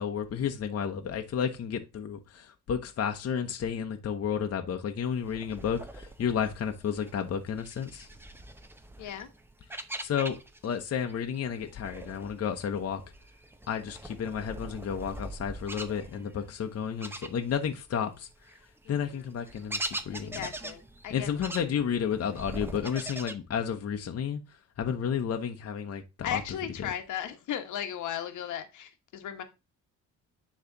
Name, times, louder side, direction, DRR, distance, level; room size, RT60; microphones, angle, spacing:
voice 1, 0.0-8.1 10.0-10.4 10.6-13.0 13.7-18.3 18.9-20.4 21.1-24.4 24.8-26.4, left 7 dB, 55° left, 1.0 m, -32 dB
sound 1, 5.1-10.8 11.1-17.8 18.2-23.3, right 1 dB, 5° right, 0.8 m, -42 dB
voice 2, 9.0-9.3 18.8-19.2 20.1-21.6 26.2-29.4, left 9 dB, 80° left, 1.2 m, -37 dB
9.8 x 3.3 x 3.9 m
cardioid pair, 90°, 30 cm